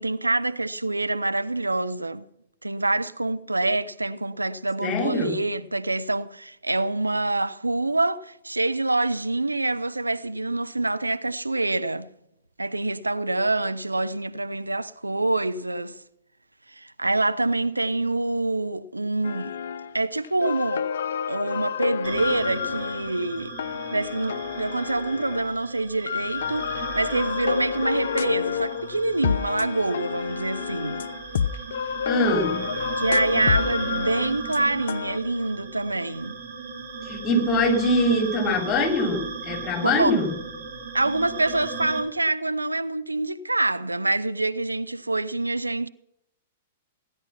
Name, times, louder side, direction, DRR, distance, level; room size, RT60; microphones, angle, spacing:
voice 1, 0.0-2.3 2.6-12.1 12.6-16.0 16.7-19.5 19.9-20.9 21.3-23.5 23.9-31.1 33.0-36.4 39.8-40.1 40.9-45.9, right 2 dB, 85° right, 0.5 m, -26 dB
voice 2, 4.8-5.4 32.0-32.6 37.0-40.3, left 1 dB, 25° left, 3.1 m, -23 dB
sound 1, 19.2-20.0 20.2-25.6 26.1-35.2, left 7 dB, 60° left, 0.5 m, -29 dB
sound 2, 22.0-42.0, right 5 dB, 55° right, 3.4 m, -36 dB
16.0 x 10.5 x 5.8 m
figure-of-eight pair, 105°, 0 cm